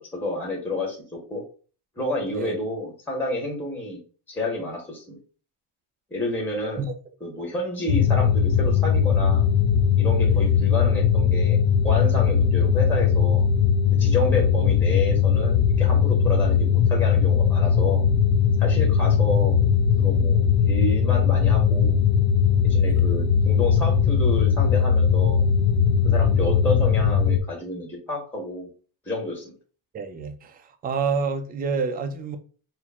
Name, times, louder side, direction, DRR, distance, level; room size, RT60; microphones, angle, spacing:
voice 1, 0.1-1.4 2.0-4.0 4.3-5.2 6.1-6.9 7.2-9.4 10.0-13.4 14.0-18.0 18.6-19.6 20.0-22.0 22.6-25.5 26.0-28.7 29.0-29.5, left 2 dB, 5° left, 1.0 m, -30 dB
sound 1, 7.9-27.4, left 7 dB, 70° left, 0.6 m, -19 dB
voice 2, 29.9-32.4, right 5 dB, 20° right, 0.3 m, -29 dB
4.4 x 2.0 x 3.4 m
cardioid pair, 135°, 45 cm